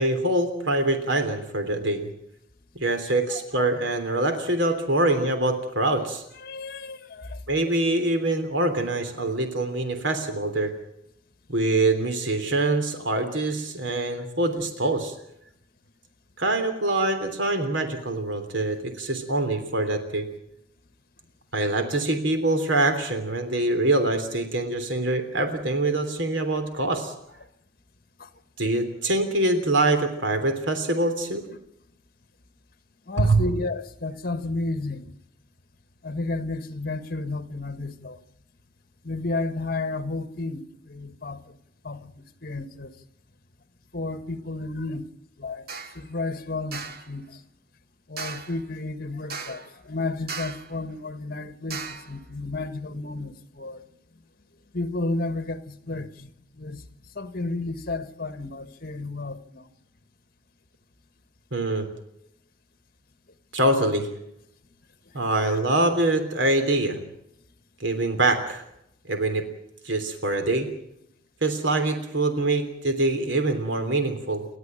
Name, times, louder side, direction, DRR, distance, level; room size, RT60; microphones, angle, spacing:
voice 1, 0.0-2.1 2.7-6.2 7.5-10.7 11.5-15.1 16.4-20.2 21.5-27.1 28.6-31.5 33.2-33.4 61.5-61.9 63.5-64.1 65.1-67.0 67.8-68.6 69.1-69.4 69.8-70.7 71.4-74.5, right 2 dB, 75° right, 3.3 m, -24 dB
voice 2, 3.3-3.7 6.4-7.4 28.2-28.3 33.1-35.1 36.0-38.2 39.0-41.6 41.8-42.9 43.9-45.1 45.4-45.7 46.0-47.4 48.1-53.8 54.7-56.3 56.6-56.8 57.2-59.7 65.5-65.6, left 2 dB, 50° left, 1.8 m, -32 dB
sound 1, 45.7-46.0 46.7-47.1 48.2-48.6 49.3-49.7 50.3-50.7 51.7-52.1, right 4 dB, 55° right, 2.5 m, -36 dB
30.0 x 12.5 x 9.0 m
head